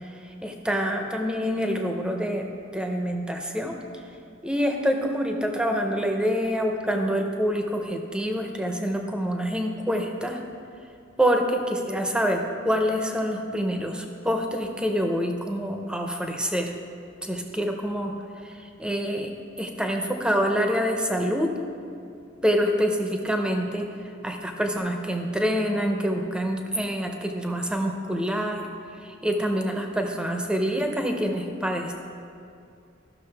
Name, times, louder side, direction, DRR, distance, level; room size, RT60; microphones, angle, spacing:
voice 1, 0.4-3.8 4.4-10.4 11.2-16.7 17.2-18.1 18.4-21.5 22.4-23.9 24.2-28.7 29.0-31.9, equal, 5° right, 3 dB, 0.6 m, -26 dB
13.5 x 6.2 x 3.4 m, 2.5 s
head